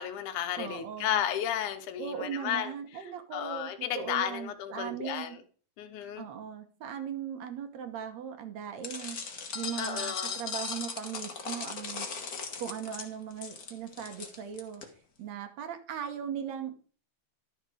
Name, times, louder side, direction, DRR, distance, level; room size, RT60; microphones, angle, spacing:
voice 1, 0.0-2.7 3.3-5.4 5.8-6.3 9.8-10.4, left 10 dB, 75° left, 2.4 m, -33 dB
voice 2, 0.6-1.2 2.0-5.4 6.2-9.2 9.5-12.1 12.6-14.8 15.2-16.8, right 8 dB, 65° right, 2.2 m, -38 dB
sound 1, 8.8-14.9, left 5 dB, 45° left, 1.2 m, -38 dB
12.0 x 6.6 x 4.9 m
omnidirectional pair, 3.7 m